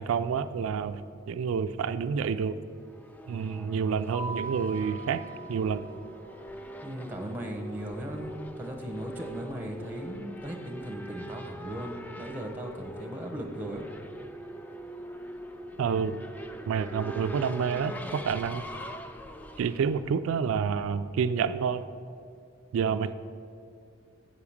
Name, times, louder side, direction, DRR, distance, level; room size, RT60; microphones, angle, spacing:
voice 1, 0.0-2.6 3.3-5.2 5.5-5.8 15.8-16.1 16.7-18.6 19.6-21.8 22.7-23.1, right 6 dB, 80° right, 11 dB, 0.3 m, -28 dB
Race car auto racing / Accelerating revving vroom, 2.7-20.8, equal, 10° left, 0.3 m, -43 dB
Mallet percussion, 4.1-6.2, right 2 dB, 65° left, 1.5 m, -40 dB
voice 2, 6.8-13.9, right 1 dB, 10° right, 2 dB, 0.9 m, -38 dB
7.6 x 4.9 x 7.1 m, 2.5 s
head